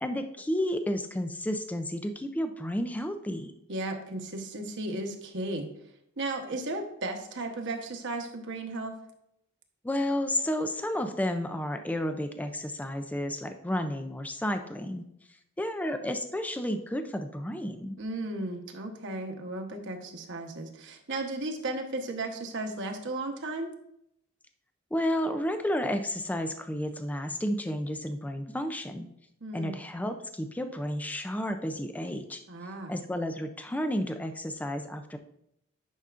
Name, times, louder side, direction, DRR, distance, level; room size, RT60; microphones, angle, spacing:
voice 1, 0.0-3.5 9.8-15.1 15.6-18.0 24.9-29.1 29.5-32.4 32.9-35.2, left 1 dB, 5° left, 7 dB, 0.4 m, -31 dB
voice 2, 3.7-5.7 6.2-9.0 18.0-23.7 29.4-29.8 32.5-32.9, right 2 dB, 60° right, 3 dB, 1.0 m, -35 dB
10.0 x 5.6 x 2.5 m, 0.77 s
head